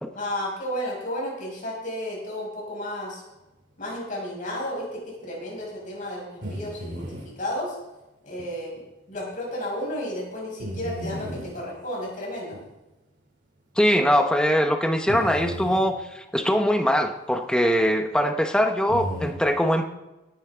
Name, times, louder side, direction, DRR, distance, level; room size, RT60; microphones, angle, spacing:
voice 1, 0.2-3.2 3.8-7.8 8.2-8.8 9.1-12.6, left 1 dB, 40° left, -2 dB, 5.4 m, -32 dB
sound 1, 6.4-7.3 8.4-8.5 9.1-9.2 10.6-11.6 12.5-12.6 13.7-13.8 15.1-15.9 18.9-19.3, equal, 60° right, 3.1 m, -34 dB
voice 2, 13.8-19.8, equal, 5° left, 5 dB, 0.9 m, -22 dB
17.0 x 10.5 x 3.7 m, 1.0 s
head